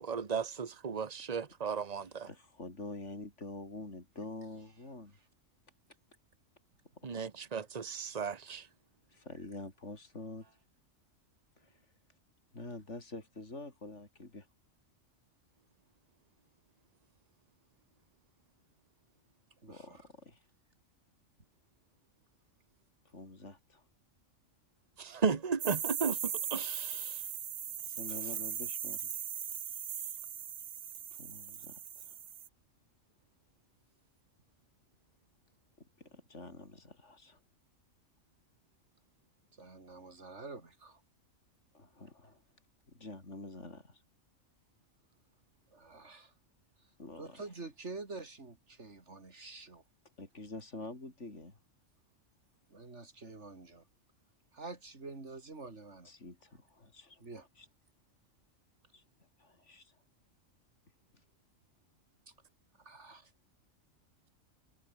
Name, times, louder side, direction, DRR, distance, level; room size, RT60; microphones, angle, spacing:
voice 1, 0.0-2.3 7.0-8.7 25.0-27.2, right 5 dB, 30° right, 1.3 m, -35 dB
voice 2, 2.3-5.1 6.9-7.2 9.1-10.4 11.6-11.8 12.5-14.5 19.7-20.4 23.0-23.8 27.8-29.1 29.7-30.1 31.1-32.2 35.8-37.4 41.7-42.4 42.9-44.0 47.0-47.4 50.2-51.6 56.0-57.2 57.6-57.7 58.9-59.0 59.4-60.0, left 2 dB, 60° left, 5.0 m, -47 dB
voice 3, 19.6-20.0 28.1-28.5 39.5-41.0 45.7-46.3 47.2-49.8 52.7-53.9 54.5-56.1 57.2-57.5 62.3-62.4 62.8-63.3, right 3 dB, 60° right, 3.6 m, -47 dB
sound 1, 25.6-32.5, right 9 dB, 85° right, 1.4 m, -39 dB
omnidirectional pair, 1.3 m